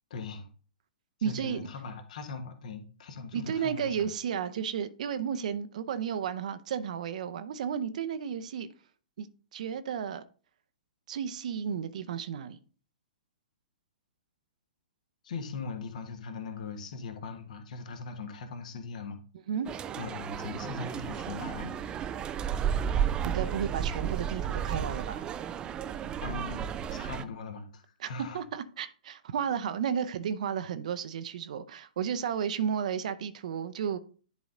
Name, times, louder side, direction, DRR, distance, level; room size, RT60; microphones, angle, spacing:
voice 1, 0.1-0.5 1.2-4.1 15.2-19.2 20.0-21.8 26.2-26.6 26.9-28.4, left 4 dB, 55° left, 1.4 m, -40 dB
voice 2, 1.2-1.7 3.3-8.7 9.2-9.3 9.5-10.2 11.1-12.6 19.5-19.7 23.2-25.3 28.0-28.1 28.3-34.0, right 8 dB, 55° right, 0.7 m, -33 dB
sound 1, 19.6-27.2, right 8 dB, 20° right, 0.4 m, -33 dB
10.5 x 4.0 x 3.8 m
figure-of-eight pair, 115°, 5 cm